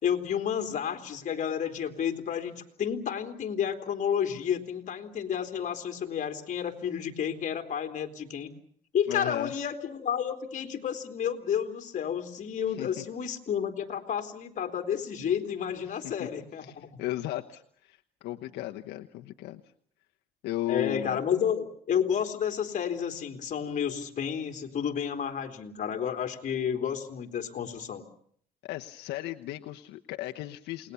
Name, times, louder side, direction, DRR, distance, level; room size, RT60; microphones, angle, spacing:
voice 1, 0.0-8.5 8.9-17.0 20.7-28.0, left 8 dB, 45° left, 6 dB, 3.5 m, -31 dB
voice 2, 9.1-9.5 12.7-12.9 15.8-16.3 16.6-19.6 20.4-21.2 28.6-30.9, left 15 dB, 80° left, 5 dB, 1.1 m, -35 dB
28.5 x 20.5 x 7.0 m, 0.62 s
cardioid pair, 110°, 17 cm